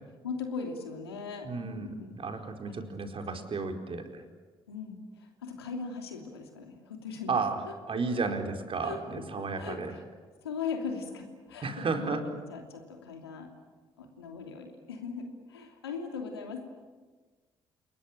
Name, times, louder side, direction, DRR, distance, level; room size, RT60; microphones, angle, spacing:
voice 1, 0.2-2.1 2.7-3.5 4.7-7.4 7.6-7.7 8.8-9.0 9.6-10.0 10.4-13.5 14.0-16.6, left 5 dB, 90° left, 3 dB, 2.9 m, -39 dB
voice 2, 1.4-1.9 2.2-4.2 7.3-7.6 7.9-9.9 11.6-12.2, right 4 dB, 45° right, 4 dB, 4.3 m, -33 dB
28.5 x 21.0 x 8.9 m, 1.4 s
hypercardioid pair, 45°, 13 cm